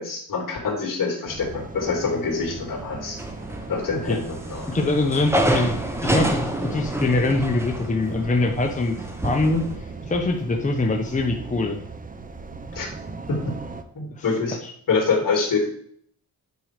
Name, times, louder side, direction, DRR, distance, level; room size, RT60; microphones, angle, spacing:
voice 1, 0.0-3.2 3.7-4.7 12.7-12.9 13.3-13.6 13.9-14.6 14.9-15.7, left 4 dB, 60° left, 0 dB, 3.2 m, -25 dB
sound 1, 1.3-13.8, right 4 dB, 20° right, 0.9 m, -37 dB
sound 2, 3.2-3.9 4.2-9.8, right 1 dB, 5° right, 1.2 m, -27 dB
voice 2, 4.7-5.7 6.0-9.0 9.2-11.8 14.1-14.2, left 2 dB, 20° left, 2 dB, 1.0 m, -23 dB
9.6 x 4.7 x 6.7 m, 0.63 s
wide cardioid pair, 130°, 37 cm